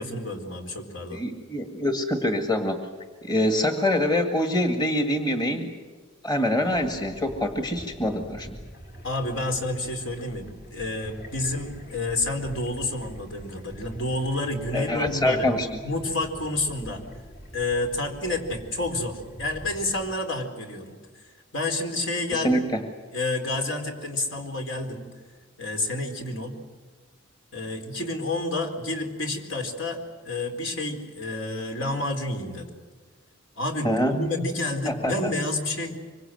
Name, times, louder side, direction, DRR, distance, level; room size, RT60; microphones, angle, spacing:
voice 1, 0.0-1.2 9.0-15.5 15.8-17.0 17.5-21.2 21.5-22.6 23.1-25.1 25.6-26.5 27.5-32.7 33.6-36.0, left 2 dB, 70° left, 4 dB, 4.2 m, -29 dB
voice 2, 1.1-2.8 3.2-5.7 6.2-8.5 14.7-15.8 22.3-22.8 33.8-34.2 34.9-35.3, left 1 dB, 20° left, 5 dB, 2.0 m, -25 dB
sound 1, 6.7-20.1, equal, 50° left, 4.2 m, -44 dB
25.5 x 24.5 x 7.9 m, 1.4 s
head